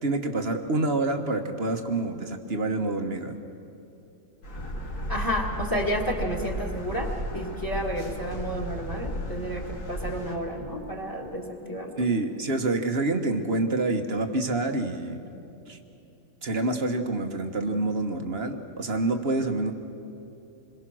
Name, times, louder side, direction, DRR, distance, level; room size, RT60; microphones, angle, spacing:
voice 1, 0.0-3.3 12.0-15.2 15.7-15.8 16.4-19.7, right 2 dB, 40° right, 5 dB, 1.4 m, -27 dB
sound 1, 4.4-10.4, equal, 85° left, 3.3 m, -34 dB
voice 2, 5.1-12.0, equal, 10° left, 2 dB, 2.2 m, -31 dB
27.5 x 22.0 x 6.2 m, 2.7 s
omnidirectional pair, 1.8 m